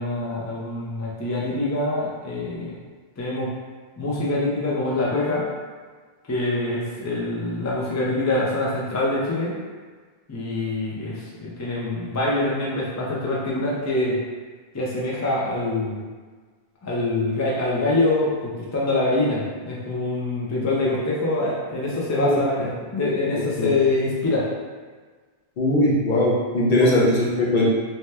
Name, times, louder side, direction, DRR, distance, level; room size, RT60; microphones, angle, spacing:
voice 1, 0.0-2.8 3.2-3.5 4.0-5.5 6.3-9.6 10.3-14.2 14.7-16.0 16.8-24.5 26.8-26.9, left 2 dB, 30° left, -5 dB, 0.3 m, -25 dB
voice 2, 25.6-27.7, left 1 dB, 55° left, -5 dB, 0.7 m, -20 dB
2.8 x 2.2 x 3.2 m, 1.5 s
omnidirectional pair, 1.0 m